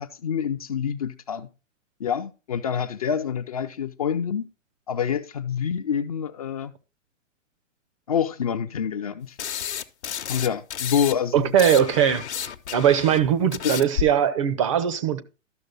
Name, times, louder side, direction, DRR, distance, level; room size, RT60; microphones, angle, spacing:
voice 1, 0.0-1.5 2.0-4.5 4.9-6.7 8.1-9.4 10.3-11.5 13.6-13.7, left 7 dB, 30° left, 0.4 m, -27 dB
sound 1, 9.4-11.1 11.4-14.0, left 9 dB, 60° left, 0.9 m, -31 dB
voice 2, 11.3-15.2, right 9 dB, 25° right, 0.5 m, -21 dB
12.5 x 6.3 x 3.8 m
figure-of-eight pair, 115°, 38 cm